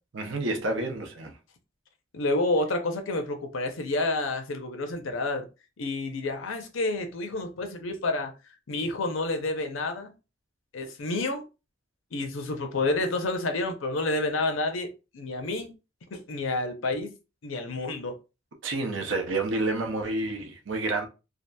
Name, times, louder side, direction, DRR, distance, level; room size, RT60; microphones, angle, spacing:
voice 1, 0.1-1.3 18.6-21.1, right 2 dB, 70° right, 0.6 m, -29 dB
voice 2, 2.1-5.5 5.8-8.3 8.7-10.1 10.7-11.4 12.1-14.9 15.1-15.7 16.1-17.1 17.4-18.2, left 2 dB, 80° left, 0.6 m, -29 dB
2.7 x 2.4 x 2.2 m
head